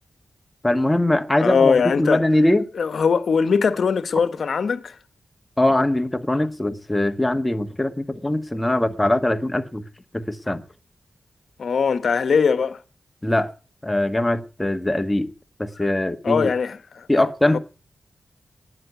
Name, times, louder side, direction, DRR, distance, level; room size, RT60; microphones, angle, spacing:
voice 1, 0.6-2.6 5.6-9.8 10.1-10.6 13.2-13.5 13.8-15.3 15.6-16.5 17.1-17.6, left 1 dB, 15° left, 1.4 m, -21 dB
voice 2, 1.4-2.2 2.7-5.0 11.6-12.8 16.2-17.1, left 5 dB, 75° left, 1.1 m, -20 dB
13.0 x 9.8 x 8.1 m
cardioid pair, 55°, 0 cm